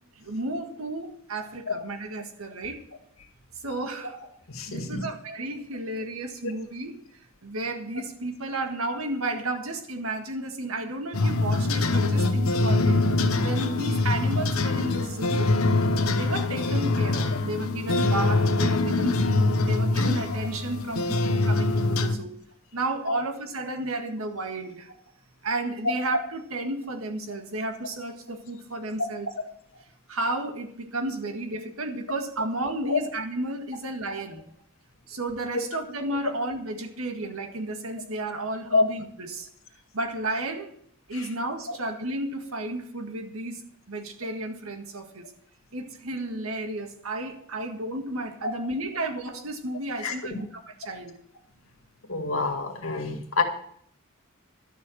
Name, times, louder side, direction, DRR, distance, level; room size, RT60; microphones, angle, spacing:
voice 1, 0.2-2.8 3.6-4.1 4.7-7.0 7.4-13.0 13.4-15.6 16.1-22.4 22.7-24.9 25.4-29.3 30.1-34.4 35.1-39.5 39.9-40.8 41.1-45.3 45.7-51.1, right 2 dB, 85° right, 1.8 m, -32 dB
voice 2, 1.4-1.8 4.5-5.0 6.4-6.5 12.2-12.3 23.1-23.2 32.8-33.0 35.5-35.7 38.7-38.8 41.1-41.3 41.7-41.8 48.4-48.5 50.0-50.4 52.1-53.4, left 3 dB, 70° left, 2.1 m, -27 dB
sound 1, 11.1-22.2, left 2 dB, 90° left, 1.1 m, -24 dB
12.0 x 6.9 x 7.9 m
head